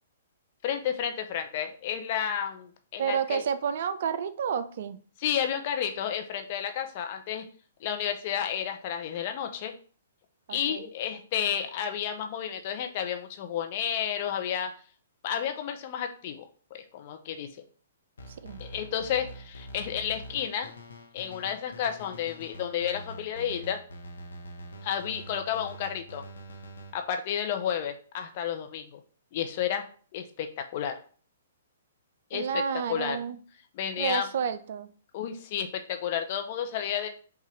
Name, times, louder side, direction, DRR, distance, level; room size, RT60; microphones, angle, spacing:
voice 1, 0.6-3.4 5.2-7.4 7.8-9.7 10.5-14.7 15.2-17.5 18.6-20.7 21.1-23.8 24.8-26.2 26.9-29.0 29.3-29.9 30.1-30.5 30.7-31.0 32.3-32.6 32.9-33.2 33.7-34.3 35.1-37.1, left 9 dB, 45° left, 6 dB, 0.6 m, -31 dB
voice 2, 3.0-5.0 10.5-10.9 18.4-18.6 32.3-33.4 34.0-34.9, right 7 dB, 55° right, 12 dB, 0.4 m, -30 dB
sound 1, 18.2-26.9, equal, 70° left, 0.8 m, -45 dB
5.3 x 2.5 x 3.2 m, 0.42 s
figure-of-eight pair, 120°, 0 cm